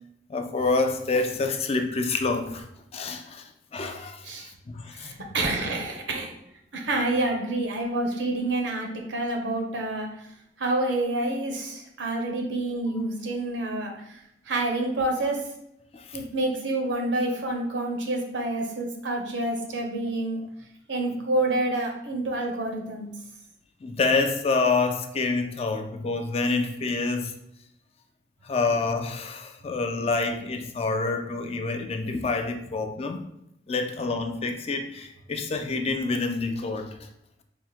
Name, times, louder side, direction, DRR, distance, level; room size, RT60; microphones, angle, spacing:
voice 1, 0.3-2.7 2.9-5.1 8.5-8.6 15.9-16.2 23.8-27.3 28.4-33.3 33.7-37.1, left 3 dB, 35° left, 6 dB, 0.4 m, -27 dB
voice 2, 4.9-6.3 6.7-10.1 10.6-14.2 14.5-15.4 16.1-20.4 20.9-23.1, right 2 dB, 80° right, 1 dB, 0.8 m, -28 dB
3.5 x 2.1 x 4.3 m, 0.78 s
head